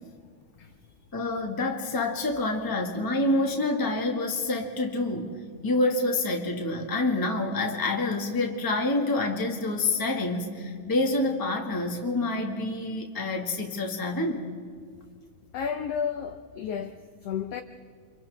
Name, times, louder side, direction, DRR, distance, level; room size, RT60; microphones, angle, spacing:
voice 1, 1.1-5.3 5.6-14.5, left 2 dB, 10° left, 0.9 m, -27 dB
voice 2, 15.5-17.6, left 7 dB, 75° left, 1.4 m, -32 dB
29.0 x 26.0 x 3.5 m
omnidirectional pair, 3.6 m